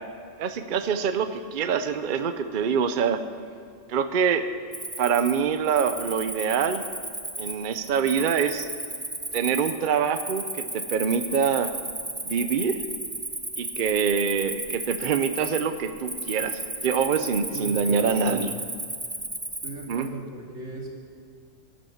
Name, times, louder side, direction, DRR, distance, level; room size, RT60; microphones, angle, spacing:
voice 1, 0.4-3.2 3.9-4.5 5.0-6.8 7.4-8.7 9.3-11.7 12.2-12.8 13.6-18.5 19.9-20.1, right 6 dB, 50° right, 9 dB, 0.7 m, -25 dB
Cricket, 4.7-20.1, right 2 dB, 15° right, 0.9 m, -34 dB
voice 2, 17.5-18.5 19.6-20.9, right 2 dB, 70° right, -2 dB, 2.7 m, -37 dB
11.5 x 11.5 x 7.2 m, 2.3 s
omnidirectional pair, 1.3 m